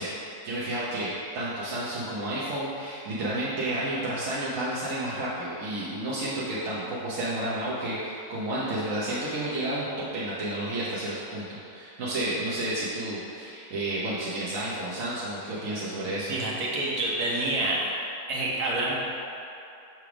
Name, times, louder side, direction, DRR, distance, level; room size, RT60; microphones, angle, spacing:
voice 1, 0.0-16.4, right 1 dB, 60° right, -9 dB, 1.2 m, -31 dB
voice 2, 16.3-17.9 18.3-18.9, right 2 dB, 85° right, -4 dB, 1.6 m, -27 dB
6.1 x 3.4 x 5.8 m, 2.7 s
omnidirectional pair, 1.7 m